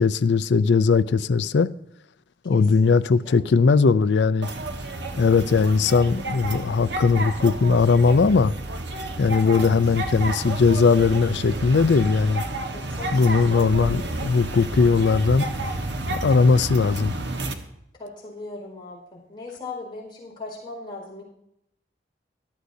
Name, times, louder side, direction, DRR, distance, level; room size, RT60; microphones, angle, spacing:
voice 1, 0.0-1.7 2.4-4.5 5.2-8.5 9.2-12.4 13.1-15.4 16.1-17.2, left 4 dB, 75° left, 0.4 m, -19 dB
voice 2, 2.4-3.4 9.4-10.0 12.7-13.5 17.9-21.2, left 2 dB, 25° left, 4.6 m, -39 dB
sound 1, 4.4-17.5, right 2 dB, 75° right, 1.2 m, -31 dB
18.0 x 12.5 x 2.7 m
head